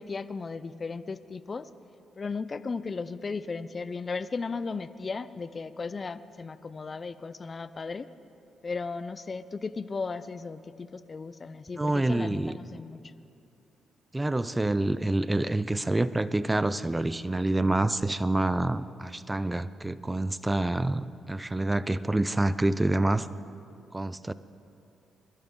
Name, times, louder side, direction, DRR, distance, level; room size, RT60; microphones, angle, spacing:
voice 1, 0.0-1.7 2.2-8.1 8.6-13.0, left 4 dB, 40° left, 15 dB, 0.5 m, -36 dB
voice 2, 11.7-12.6 14.1-23.3 23.9-24.3, right 2 dB, 20° right, 16 dB, 0.5 m, -27 dB
22.0 x 12.0 x 3.8 m, 2.6 s
hypercardioid pair, 50°, 0 cm